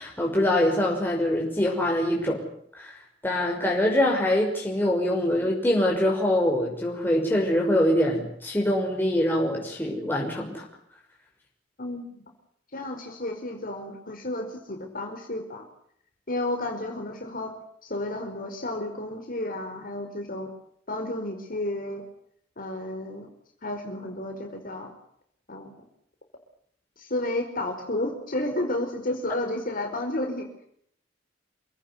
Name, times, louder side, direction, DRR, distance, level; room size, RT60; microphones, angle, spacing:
voice 1, 0.0-2.4 2.7-3.0 3.2-10.6, left 1 dB, 10° left, -2 dB, 5.9 m, -24 dB
voice 2, 11.8-12.2 12.7-15.7 16.3-17.5 17.8-20.5 20.9-22.0 22.6-23.3 23.6-24.9 25.5-25.8 27.0-30.5, left 1 dB, 50° left, 4 dB, 4.8 m, -32 dB
28.0 x 18.0 x 9.7 m, 0.68 s
head